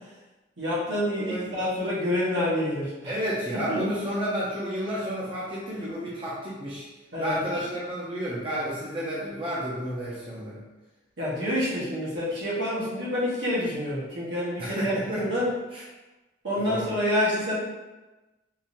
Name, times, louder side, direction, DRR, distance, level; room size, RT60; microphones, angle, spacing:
voice 1, 0.6-3.1 3.7-3.8 7.1-7.4 11.2-15.5 16.4-17.6, left 1 dB, 70° right, -7 dB, 1.3 m, -27 dB
voice 2, 1.2-1.5 3.1-6.9 7.2-10.6 14.6-15.4 15.7-15.8 16.6-16.9, equal, 30° right, -7 dB, 0.7 m, -31 dB
3.7 x 3.0 x 2.6 m, 1.1 s
head